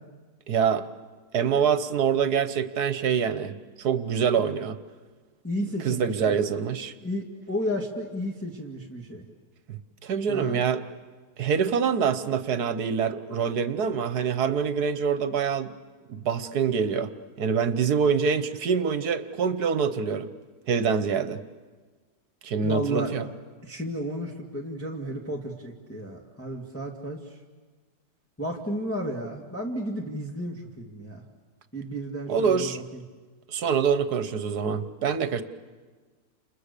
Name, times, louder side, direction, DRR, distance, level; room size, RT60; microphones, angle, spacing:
voice 1, 0.5-0.9 1.3-4.8 5.8-6.9 9.7-10.8 11.4-15.7 16.1-17.1 17.4-20.3 20.7-21.4 22.4-23.3 32.3-32.8 33.5-35.4, right 6 dB, 70° right, 11 dB, 1.6 m, -25 dB
voice 2, 5.4-6.4 7.0-9.2 10.3-10.6 22.6-23.1 23.6-27.4 28.4-31.2 31.7-33.0, equal, 10° left, -1 dB, 1.9 m, -33 dB
30.0 x 28.5 x 6.8 m, 1.4 s
omnidirectional pair, 1.7 m